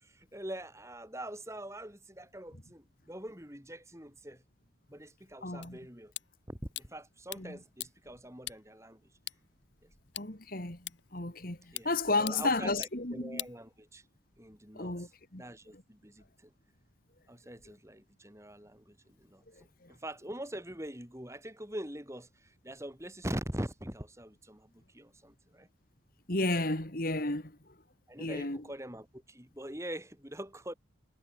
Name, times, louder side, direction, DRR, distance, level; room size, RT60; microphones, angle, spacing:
voice 1, 0.0-4.4 4.9-6.1 6.5-9.2 11.7-11.9 12.2-14.1 14.4-16.5 17.3-25.7 28.1-30.7, right 1 dB, 15° right, 6.2 m, -43 dB
voice 2, 5.4-5.8 7.4-7.6 10.2-13.5 14.7-15.4 15.7-15.8 19.6-19.9 26.3-27.6 28.2-28.6, left 2 dB, 45° left, 2.9 m, -33 dB
sound 1, 5.6-14.2, left 15 dB, 70° left, 2.7 m, -47 dB
head